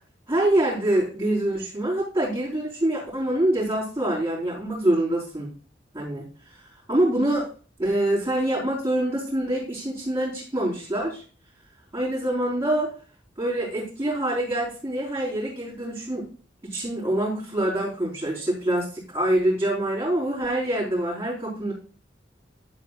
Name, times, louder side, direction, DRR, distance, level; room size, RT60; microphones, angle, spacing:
voice 1, 0.3-5.5 5.9-6.2 6.9-7.4 7.8-11.2 11.9-12.9 13.4-16.2 16.6-21.7, right 1 dB, 20° right, -9 dB, 4.6 m, -25 dB
11.5 x 8.5 x 2.5 m, 0.38 s
head